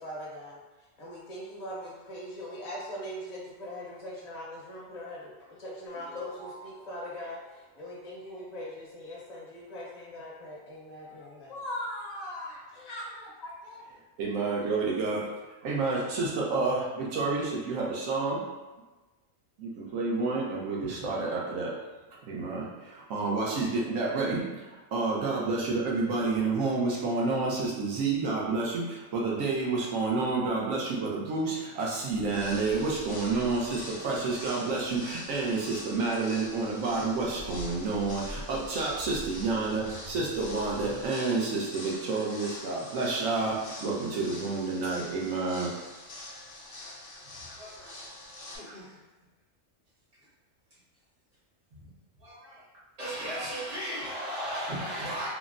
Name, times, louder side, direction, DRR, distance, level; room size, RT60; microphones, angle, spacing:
voice 1, 0.0-13.8, left 1 dB, 40° left, -5 dB, 0.7 m, -41 dB
sound 1, 5.9-9.1, right 3 dB, 5° left, 0.6 m, -51 dB
voice 2, 14.2-15.3 15.6-18.4 19.6-21.8 22.2-45.8, right 3 dB, 85° right, -3 dB, 1.1 m, -29 dB
sound 2, 32.1-41.1, equal, 45° right, 0.4 m, -47 dB
sound 3, 32.2-48.6, left 2 dB, 75° left, 1.0 m, -45 dB
voice 3, 47.4-48.0 48.6-49.0 51.9-52.6 53.0-55.3, equal, 70° right, -10 dB, 1.8 m, -36 dB
3.6 x 2.1 x 2.4 m, 1.2 s
omnidirectional pair, 1.3 m